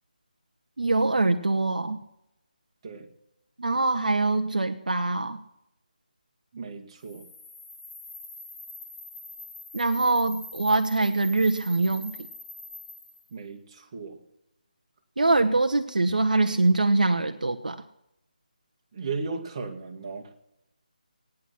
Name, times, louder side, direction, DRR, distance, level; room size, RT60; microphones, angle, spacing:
voice 1, 0.8-2.0 3.6-5.4 9.7-12.1 15.2-17.8, right 2 dB, 70° right, 6 dB, 1.0 m, -23 dB
voice 2, 6.5-7.2 13.3-14.2 18.9-20.3, right 4 dB, 35° right, 3 dB, 1.9 m, -36 dB
sound 1, 7.0-13.3, left 2 dB, 25° left, 2.7 m, -44 dB
17.0 x 10.0 x 5.9 m, 0.84 s
figure-of-eight pair, 155°, 5 cm